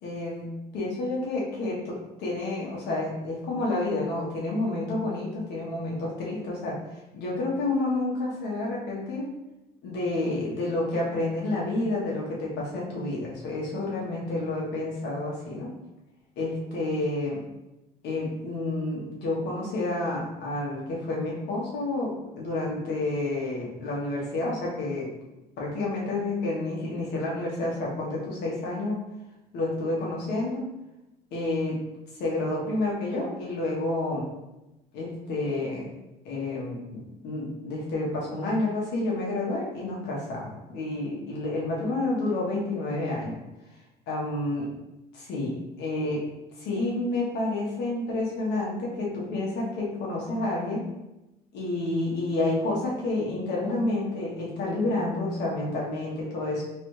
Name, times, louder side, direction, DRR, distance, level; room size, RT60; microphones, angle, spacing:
voice 1, 0.0-6.8 7.1-9.3 9.8-15.7 16.4-17.4 18.0-25.1 25.6-29.0 29.5-30.6 31.3-31.8 32.2-34.3 34.9-35.9 36.2-43.4 44.1-44.7 45.1-46.2 46.6-50.8 51.5-56.6, left 2 dB, 80° left, -4 dB, 1.3 m, -29 dB
3.4 x 3.2 x 3.2 m, 0.96 s
cardioid pair, 110°, 17 cm